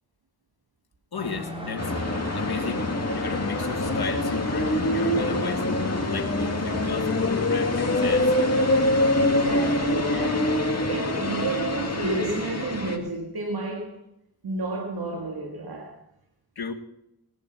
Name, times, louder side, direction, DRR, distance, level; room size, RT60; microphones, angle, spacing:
voice 1, 1.1-1.9 2.3-5.7 6.1-8.4 16.5-16.7, left 5 dB, 90° left, 1.5 m, -34 dB
sound 1, 1.1-9.4, equal, 15° right, 4.1 m, -42 dB
sound 2, 1.8-13.0, left 1 dB, 45° left, 2.2 m, -25 dB
voice 2, 9.2-14.0 14.4-16.0, right 3 dB, 90° right, 1.9 m, -31 dB
19.5 x 10.0 x 4.5 m
cardioid pair, 50°, 37 cm